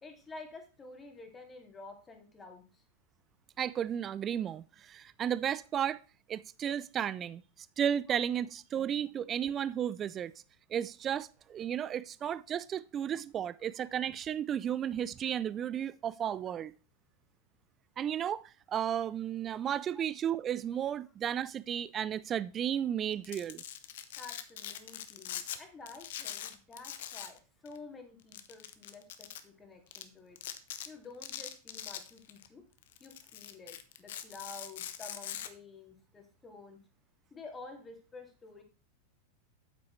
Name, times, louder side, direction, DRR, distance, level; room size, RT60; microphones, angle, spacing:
voice 1, 0.0-2.8 8.1-8.2 19.9-20.0 24.2-30.4 30.8-32.6 33.0-36.8 37.3-38.6, left 3 dB, 20° left, 2.3 m, -50 dB
voice 2, 3.6-6.0 6.3-7.4 7.8-10.3 10.7-16.7 18.0-23.6, right 9 dB, 30° right, 0.3 m, -33 dB
Domestic sounds home sounds, 23.1-25.6 25.9-27.4 27.6-27.8 28.3-29.4 29.9-30.0 30.4-30.9 31.2-32.5 32.8-35.5, left 11 dB, 65° left, 0.9 m, -42 dB
8.5 x 8.2 x 3.2 m
hypercardioid pair, 95°, 0 cm